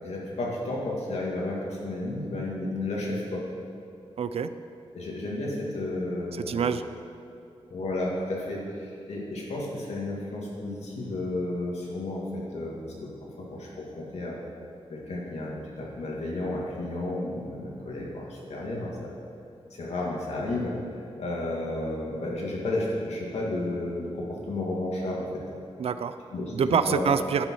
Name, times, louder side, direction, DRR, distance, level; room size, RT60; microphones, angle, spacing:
voice 1, 0.0-3.5 4.9-6.7 7.7-13.1 13.4-14.4 14.9-19.1 19.7-20.8 21.2-25.4 26.3-27.1, left 2 dB, 80° left, -3 dB, 2.3 m, -32 dB
voice 2, 4.2-4.5 6.4-6.8 25.8-26.1 26.5-27.5, right 6 dB, 65° right, 11 dB, 0.4 m, -26 dB
10.5 x 8.3 x 4.7 m, 2.6 s
wide cardioid pair, 180°, 11 cm